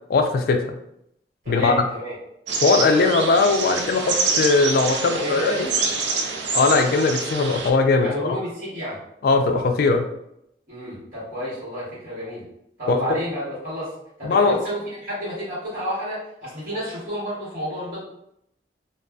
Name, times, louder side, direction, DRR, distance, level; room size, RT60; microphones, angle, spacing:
voice 1, 0.1-0.6 1.5-1.8 2.6-5.7 6.5-8.1 9.2-10.1 12.9-13.0 14.2-14.6, left 3 dB, 55° left, 6 dB, 0.3 m, -19 dB
voice 2, 1.4-2.1 5.1-6.0 8.0-9.0 10.7-12.4 12.8-13.9 14.2-18.0, equal, 50° right, -10 dB, 1.3 m, -30 dB
sound 1, 2.5-7.7, right 4 dB, 85° right, 0.4 m, -26 dB
2.5 x 2.3 x 2.2 m, 0.77 s
head